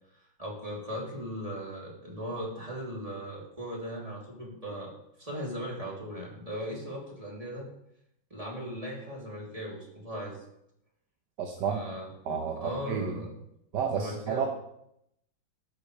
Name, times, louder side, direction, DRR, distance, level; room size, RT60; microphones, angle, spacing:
voice 1, 0.4-4.9 5.2-7.7 8.3-10.4 11.6-12.1 12.6-13.3 13.9-14.5, equal, 15° right, -3 dB, 3.1 m, -38 dB
voice 2, 11.4-11.8 12.3-13.1 13.7-14.5, right 7 dB, 60° right, 3 dB, 1.5 m, -31 dB
14.0 x 11.5 x 3.3 m, 0.79 s
omnidirectional pair, 2.2 m